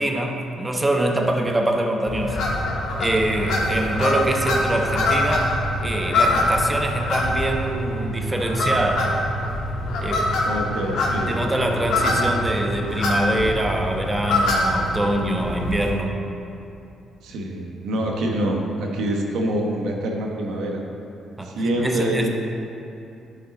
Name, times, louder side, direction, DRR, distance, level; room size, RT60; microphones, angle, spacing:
voice 1, 0.0-2.4 3.0-5.5 5.8-9.1 10.0-10.4 11.3-16.1 21.4-21.5 21.8-22.3, right 1 dB, 15° right, 2 dB, 0.9 m, -24 dB
sound 1, 2.1-15.9, left 1 dB, 80° left, 1.3 m, -24 dB
voice 2, 10.4-11.3 17.2-20.8 21.4-22.3, right 1 dB, 80° right, 0 dB, 1.1 m, -25 dB
10.5 x 5.4 x 4.1 m, 2.7 s
cardioid pair, 90°, 0 cm